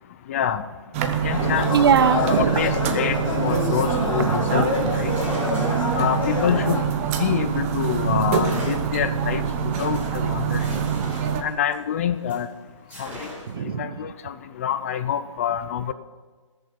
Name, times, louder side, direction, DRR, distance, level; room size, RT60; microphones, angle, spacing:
voice 1, 0.3-0.6 1.2-1.7 2.1-3.2 3.4-5.1 5.9-6.8 7.2-9.4 9.8-10.6 11.4-12.5 13.0-13.3 13.8-15.9, left 9 dB, 25° left, 12 dB, 0.4 m, -26 dB
sound 1, 0.9-11.4, right 7 dB, 25° right, 0.9 m, -25 dB
sound 2, 1.3-6.8, left 3 dB, 80° left, 3.3 m, -27 dB
voice 2, 1.7-2.6 4.2-4.4 8.0-8.3 10.6-11.1 13.5-13.9, right 7 dB, 45° right, 15 dB, 0.6 m, -22 dB
sound 3, 4.7-7.7 8.3-12.5 12.9-13.7, equal, 10° right, 3.2 m, -41 dB
18.5 x 6.8 x 5.3 m, 1.4 s
hypercardioid pair, 150°, 17 cm